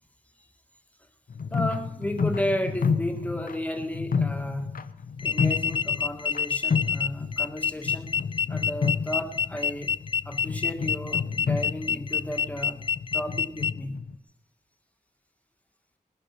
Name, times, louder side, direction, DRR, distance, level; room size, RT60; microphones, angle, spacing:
sound 1, 1.3-6.4 6.7-7.6 7.9-14.1, left 5 dB, 75° left, 0.9 m, -31 dB
voice 1, 1.5-4.7 5.2-8.2 8.5-9.9 10.3-12.8 13.1-14.0, equal, 10° left, 1.8 m, -33 dB
sound 2, 5.2-13.7, left 5 dB, 35° left, 0.5 m, -27 dB
20.0 x 10.5 x 5.9 m
wide cardioid pair, 110°, 15 cm